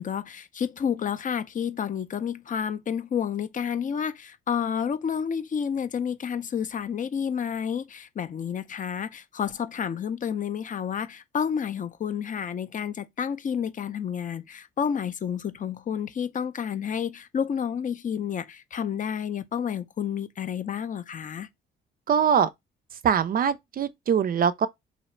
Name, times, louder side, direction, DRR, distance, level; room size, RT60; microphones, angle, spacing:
voice 1, 0.0-21.5, left 7 dB, 40° left, 0.5 m, -30 dB
voice 2, 22.1-22.5 23.0-24.7, right 8 dB, 45° right, 0.4 m, -22 dB
3.1 x 2.8 x 4.3 m
cardioid pair, 90°, 20 cm